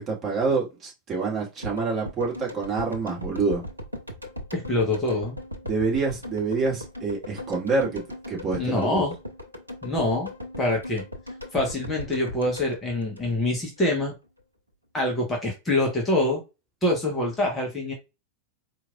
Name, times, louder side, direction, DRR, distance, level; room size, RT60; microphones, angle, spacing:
voice 1, 0.0-3.6 5.6-9.0, right 4 dB, 25° right, 1.8 m, -27 dB
sound 1, 1.6-13.8 14.1-14.2, left 1 dB, 85° right, 0.6 m, -38 dB
voice 2, 4.5-5.4 8.6-9.1 9.8-10.3 10.6-11.0 11.5-14.1 14.9-16.4 16.8-17.9, left 2 dB, 15° left, 1.3 m, -25 dB
4.5 x 2.8 x 2.5 m
figure-of-eight pair, 90°, 0 cm